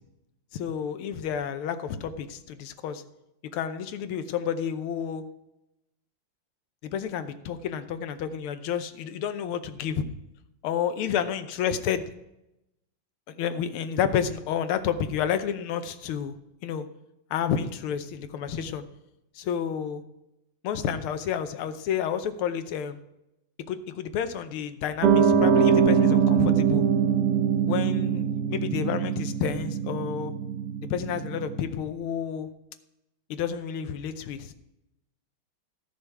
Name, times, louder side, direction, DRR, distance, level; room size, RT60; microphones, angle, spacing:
voice 1, 0.5-3.0 3.5-5.2 6.8-10.0 10.6-12.0 13.3-16.3 16.6-16.9 17.3-18.8 19.3-20.0 20.6-23.0 23.7-26.8 27.7-30.3 30.9-32.5 33.3-34.5, left 8 dB, 90° left, 10 dB, 1.7 m, -30 dB
Piano, 25.0-31.6, right 7 dB, 60° right, 1.3 m, -23 dB
13.5 x 6.7 x 4.7 m, 0.89 s
omnidirectional pair, 2.3 m